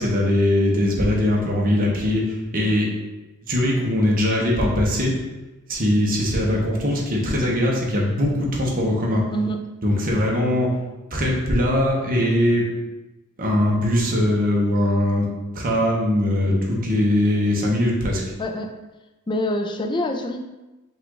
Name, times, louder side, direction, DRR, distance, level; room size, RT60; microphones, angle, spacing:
voice 1, 0.0-2.9 3.5-5.1 5.7-9.2 9.8-10.7 11.1-12.6 13.4-15.3 15.5-18.2, left 1 dB, 40° right, -2 dB, 1.0 m, -21 dB
voice 2, 18.4-18.7 19.3-20.4, left 1 dB, 20° left, 4 dB, 0.4 m, -25 dB
5.5 x 2.4 x 3.8 m, 1.1 s
head